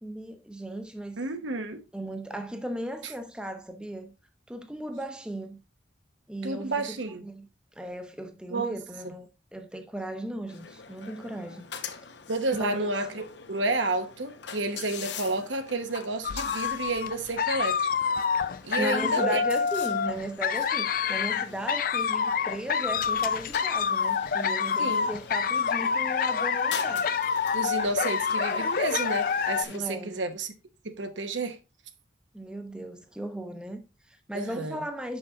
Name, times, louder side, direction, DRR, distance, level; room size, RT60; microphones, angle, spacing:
voice 1, 0.0-1.2 1.9-4.1 4.5-5.6 6.3-7.5 7.8-11.7 12.6-12.9 18.8-27.1 29.7-30.2 32.3-35.2, right 1 dB, 5° right, 0.7 m, -36 dB
voice 2, 1.2-1.8 6.4-7.2 8.5-8.8 12.3-17.9 18.6-19.4 24.8-25.1 27.5-30.5 30.8-31.6 34.3-34.8, right 2 dB, 80° right, 1.0 m, -30 dB
sound 1, 10.5-29.8, left 6 dB, 70° left, 0.8 m, -43 dB
sound 2, 16.2-29.6, left 6 dB, 45° left, 0.4 m, -27 dB
6.2 x 5.6 x 3.5 m
head